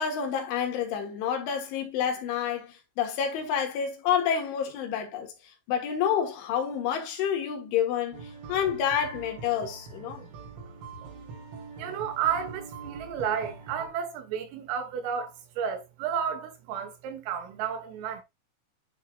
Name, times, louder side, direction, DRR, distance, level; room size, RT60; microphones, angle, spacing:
voice 1, 0.0-5.3 5.7-10.2, left 8 dB, 75° left, 3.8 m, -29 dB
sound 1, 8.1-13.9, right 4 dB, 70° right, 5.6 m, -43 dB
voice 2, 11.8-18.2, right 8 dB, 90° right, 4.0 m, -32 dB
11.0 x 4.5 x 2.4 m
omnidirectional pair, 5.7 m